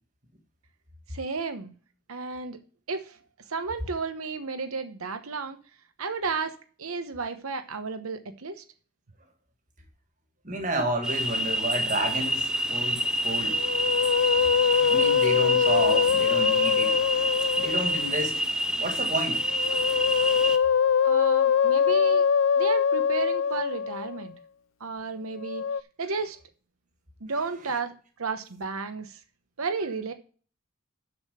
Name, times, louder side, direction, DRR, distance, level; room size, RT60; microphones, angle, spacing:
voice 1, 1.1-1.7 2.1-2.6 2.9-3.2 3.5-5.6 6.0-8.6 21.0-22.2 22.6-24.3 24.8-25.6 26.0-26.4 27.2-29.2 29.6-30.1, right 4 dB, 90° right, 1.0 m, -33 dB
voice 2, 10.4-13.6 14.2-17.0 17.5-18.4 18.8-19.7, right 1 dB, 35° right, 1.9 m, -31 dB
sound 1, 11.0-20.6, equal, 5° right, 0.5 m, -27 dB
Musical instrument, 13.5-18.1 19.4-24.3 25.4-25.8, left 7 dB, 65° left, 0.4 m, -23 dB
7.2 x 6.6 x 6.5 m
head